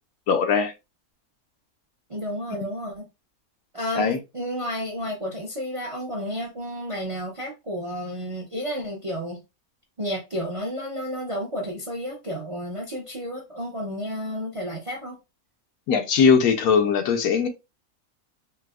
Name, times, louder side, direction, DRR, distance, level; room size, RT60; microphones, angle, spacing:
voice 1, 0.3-0.7 2.6-2.7 4.0-4.2 15.9-17.5, left 6 dB, 85° left, 1.1 m, -20 dB
voice 2, 2.1-3.1 3.7-9.4 10.0-15.2, equal, 45° right, 0.4 m, -31 dB
4.4 x 2.0 x 2.3 m
omnidirectional pair, 1.5 m